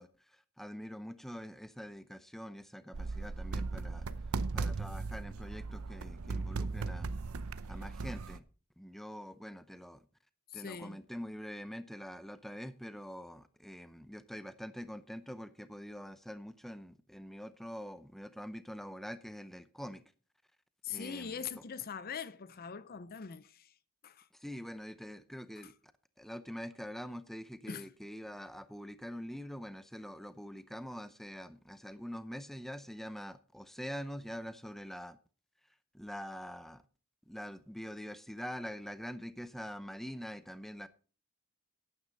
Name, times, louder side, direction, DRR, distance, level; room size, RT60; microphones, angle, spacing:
voice 1, 0.0-4.1 4.5-7.2 7.7-8.4 8.8-10.1 10.5-20.0 20.9-21.4 24.3-25.7 26.2-35.2 35.9-36.8 37.3-40.9, equal, ahead, 0.6 m, -45 dB
sound 1, 2.9-8.4, right 3 dB, 70° right, 0.7 m, -37 dB
voice 2, 10.5-11.0 20.8-23.8 24.0-24.3 25.6-25.7 27.7-27.9, left 7 dB, 40° left, 0.5 m, -42 dB
12.0 x 9.5 x 3.9 m
head